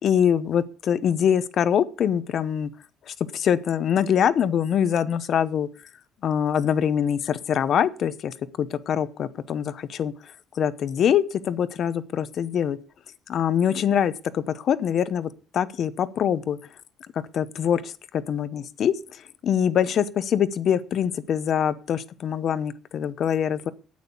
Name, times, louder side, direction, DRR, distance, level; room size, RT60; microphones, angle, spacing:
voice 1, 0.0-2.7 3.1-5.7 6.2-10.1 10.6-12.8 13.3-16.6 17.1-23.7, left 8 dB, 40° left, 16 dB, 0.8 m, -24 dB
9.4 x 9.0 x 8.4 m, 0.39 s
cardioid pair, 175°, 0 cm